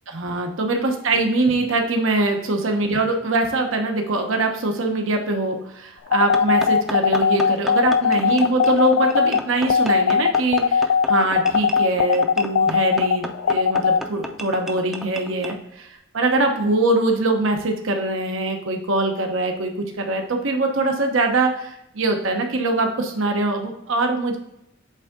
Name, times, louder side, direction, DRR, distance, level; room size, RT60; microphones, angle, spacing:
voice 1, 0.1-24.4, right 2 dB, 80° right, 3 dB, 1.0 m, -23 dB
sound 1, 6.1-14.0, left 6 dB, 75° left, 0.3 m, -19 dB
sound 2, 6.3-15.6, equal, ahead, 0.4 m, -34 dB
8.1 x 3.6 x 3.7 m, 0.80 s
head